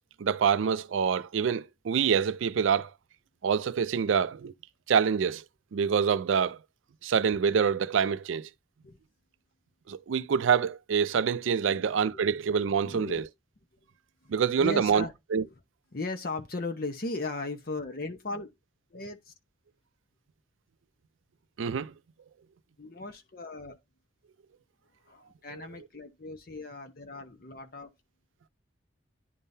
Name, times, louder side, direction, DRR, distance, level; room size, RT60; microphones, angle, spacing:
voice 1, 0.2-2.9 3.4-4.5 4.9-5.4 5.7-6.6 7.0-8.5 9.9-13.2 14.3-15.0 15.3-15.4 21.6-21.9, right 6 dB, 80° right, 0.4 m, -26 dB
voice 2, 12.8-13.3 14.2-14.3 14.6-15.1 15.4-15.5 15.9-18.5 18.9-19.3 22.8-23.8 25.1-27.9, left 3 dB, 50° left, 0.8 m, -37 dB
10.5 x 3.6 x 2.7 m
head